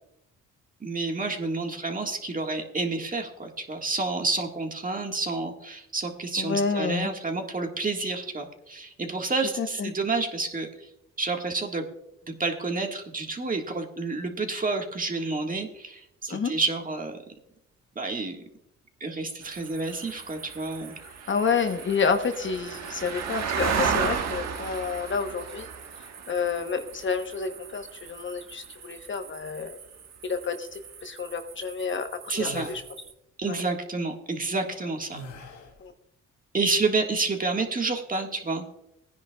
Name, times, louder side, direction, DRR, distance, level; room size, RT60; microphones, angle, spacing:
voice 1, 0.8-10.7 11.2-11.9 12.3-17.2 18.0-18.4 19.0-21.0 32.3-32.7 33.4-35.2 36.5-38.6, right 3 dB, 25° right, 3 dB, 1.7 m, -29 dB
voice 2, 6.4-7.1 9.6-9.9 16.3-16.5 21.3-25.7 26.3-29.8 30.2-32.1 32.3-32.8 33.5-33.6 35.8-35.9, left 5 dB, 40° left, 7 dB, 1.0 m, -29 dB
sound 1, 19.4-33.1, right 6 dB, 60° right, 1.3 m, -35 dB
sound 2, 32.3-32.8 35.1-35.8, left 1 dB, 80° left, 3.0 m, -41 dB
18.5 x 10.0 x 2.3 m, 0.83 s
cardioid pair, 90°, 30 cm